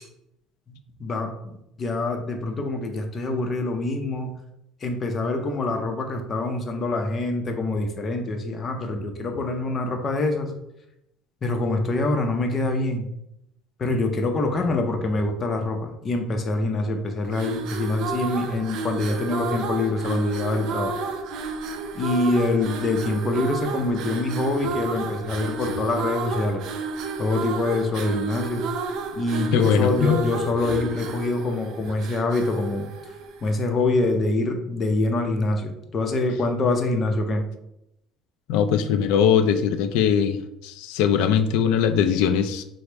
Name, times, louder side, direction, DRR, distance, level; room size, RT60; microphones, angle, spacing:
voice 1, 0.7-4.4 4.8-10.5 11.4-13.1 13.8-21.0 21.9-26.6 27.2-28.7 29.1-32.9 33.4-37.5, left 2 dB, 25° left, 4 dB, 0.6 m, -25 dB
sound 1, 17.2-33.7, right 4 dB, 60° right, 0.5 m, -31 dB
voice 2, 29.5-30.2 38.5-42.6, left 8 dB, 80° left, 9 dB, 0.3 m, -21 dB
4.9 x 2.0 x 4.4 m, 0.82 s
cardioid pair, 155°, 0 cm